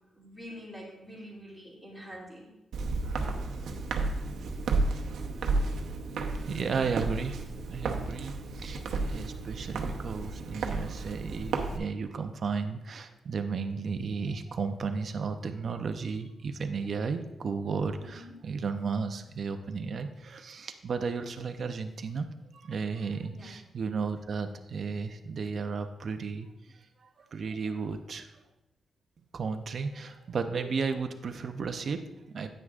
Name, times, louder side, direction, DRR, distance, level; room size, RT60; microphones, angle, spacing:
voice 1, 0.1-2.5 18.0-18.3 23.3-23.5, equal, ahead, -6 dB, 2.5 m, -46 dB
Walk footsteps, 2.7-11.8, right 3 dB, 80° right, 0.9 m, -32 dB
voice 2, 6.4-22.3 22.5-28.3 29.3-32.5, right 5 dB, 45° right, 7 dB, 0.6 m, -34 dB
9.7 x 9.1 x 2.4 m, 0.91 s
wide cardioid pair, 155°, 0 cm